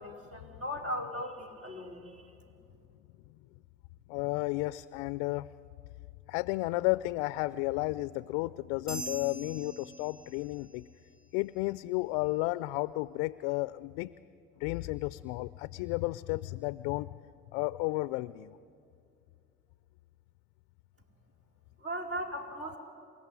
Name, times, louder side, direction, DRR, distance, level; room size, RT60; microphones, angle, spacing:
voice 1, 0.0-2.2 21.8-22.8, equal, 40° right, 2 dB, 4.4 m, -38 dB
voice 2, 4.1-5.5 6.3-10.9 11.3-14.1 14.6-17.1 17.5-18.6, left 20 dB, 80° left, 17 dB, 0.5 m, -32 dB
sound 1, 8.9-10.7, right 1 dB, ahead, 5.7 m, -42 dB
27.5 x 15.0 x 9.7 m, 2.5 s
hypercardioid pair, 45°, 36 cm